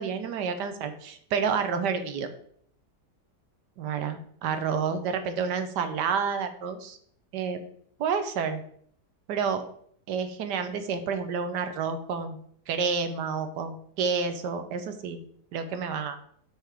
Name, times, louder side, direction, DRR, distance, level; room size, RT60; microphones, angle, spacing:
voice 1, 0.0-2.3 3.8-7.0 7.3-7.6 8.0-8.6 9.3-9.6 10.1-12.4 12.7-15.2 15.5-16.2, right 6 dB, 85° right, 8 dB, 1.4 m, -29 dB
8.1 x 6.1 x 3.5 m, 0.63 s
omnidirectional pair, 1.8 m